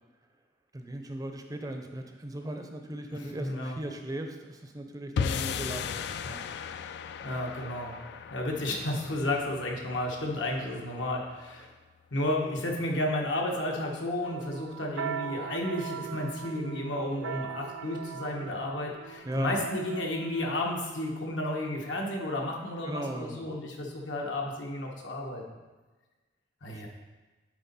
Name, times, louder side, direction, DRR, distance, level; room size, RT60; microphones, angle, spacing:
voice 1, 0.7-6.5 19.2-19.6 22.8-23.5 26.7-26.8, right 1 dB, 20° right, 4 dB, 0.5 m, -38 dB
voice 2, 3.4-3.8 7.2-7.9 8.3-11.7 12.1-25.5 26.6-26.9, left 1 dB, 80° left, -1 dB, 1.3 m, -32 dB
sound 1, 5.2-11.5, left 6 dB, 60° left, 0.3 m, -37 dB
sound 2, 14.2-21.7, right 7 dB, 85° right, 0.4 m, -40 dB
9.6 x 4.2 x 4.2 m, 1.3 s
head